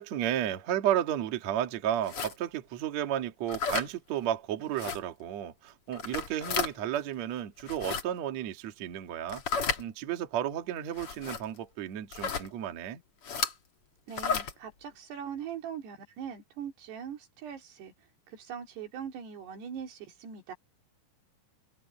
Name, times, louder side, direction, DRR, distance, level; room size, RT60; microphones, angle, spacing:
voice 1, 0.0-13.0, right 11 dB, 50° right, 2.4 m, -33 dB
sound 1, 2.0-2.3 3.5-3.9 4.8-5.0 5.9-6.7 7.6-8.0 9.3-9.8 11.0-11.4 12.1-12.5 13.2-13.5 14.1-14.5, left 5 dB, 40° left, 2.3 m, -32 dB
voice 2, 14.1-17.9 18.3-20.5, right 8 dB, 80° right, 4.9 m, -41 dB
open air
omnidirectional pair, 4.8 m